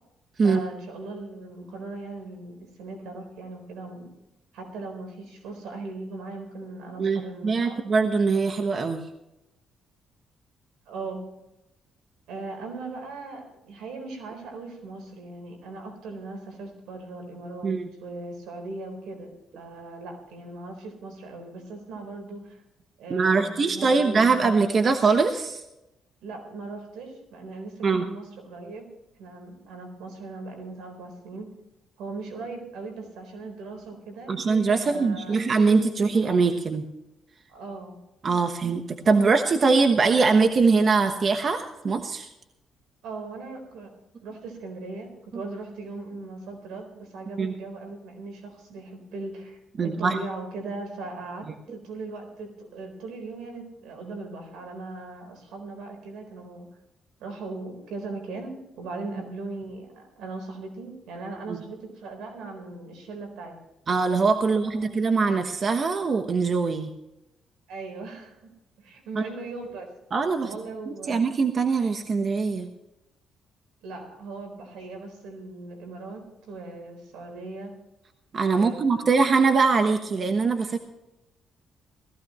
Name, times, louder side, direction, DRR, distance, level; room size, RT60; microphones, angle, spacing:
voice 1, 0.4-4.1 4.5-7.8 10.9-11.3 12.3-17.8 18.0-22.6 23.0-24.3 26.2-28.9 29.2-31.5 32.0-34.3 34.8-35.4 37.5-38.0 43.0-43.9 44.2-56.7 57.2-63.5 64.7-65.0 67.7-68.4 68.8-69.9 70.4-71.2 73.8-77.7 78.5-79.1, right 3 dB, 85° right, 4 dB, 4.1 m, -39 dB
voice 2, 7.0-9.1 17.6-17.9 23.1-25.6 27.8-28.1 34.3-36.8 38.2-42.3 47.4-47.5 49.8-50.2 51.7-51.8 61.5-61.6 63.9-66.9 69.2-69.3 70.1-70.5 71.1-72.7 78.3-80.8, right 4 dB, 45° right, 6 dB, 1.1 m, -22 dB
17.5 x 15.0 x 3.1 m, 0.91 s
cardioid pair, 90°, 0 cm